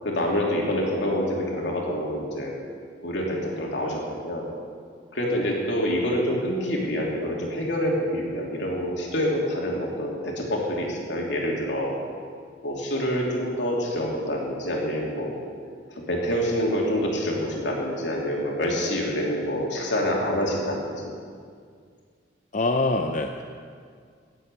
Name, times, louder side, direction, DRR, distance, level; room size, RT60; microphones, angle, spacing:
voice 1, 0.0-2.5 3.0-4.5 5.1-11.9 12.6-15.4 16.0-20.9, equal, 75° left, -2 dB, 2.9 m, -26 dB
voice 2, 22.5-23.4, left 2 dB, 40° left, 4 dB, 0.6 m, -24 dB
17.0 x 7.7 x 6.8 m, 2.1 s
head